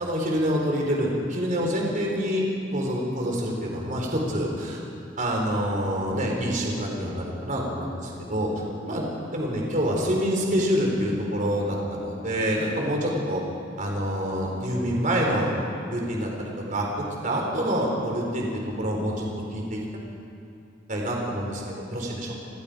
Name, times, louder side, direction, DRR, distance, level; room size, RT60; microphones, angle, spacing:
voice 1, 0.0-2.5 2.7-4.8 5.2-8.5 8.9-9.0 9.3-13.4 13.8-15.5 15.9-19.8 20.9-22.3, equal, 45° right, -1 dB, 4.2 m, -26 dB
30.0 x 21.0 x 5.2 m, 2.6 s
head